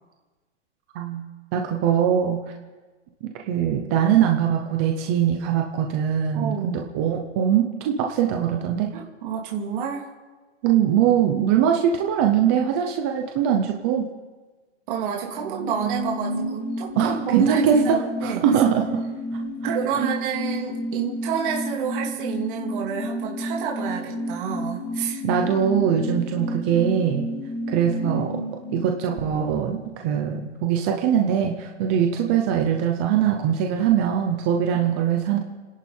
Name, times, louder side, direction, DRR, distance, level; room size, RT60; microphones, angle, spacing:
voice 1, 1.5-2.4 3.2-8.9 10.6-14.0 17.0-18.0 18.2-19.0 19.6-20.1 25.2-27.3 27.7-28.4 28.7-35.4, right 9 dB, 10° right, 2 dB, 0.4 m, -22 dB
voice 2, 6.3-6.8 8.9-10.0 14.9-18.4 19.6-25.2, right 6 dB, 45° right, -2 dB, 3.0 m, -28 dB
sound 1, 15.2-30.3 30.6-30.7, equal, 80° left, 4.1 m, -31 dB
30.0 x 11.0 x 4.3 m, 1.3 s
hypercardioid pair, 160°, 37 cm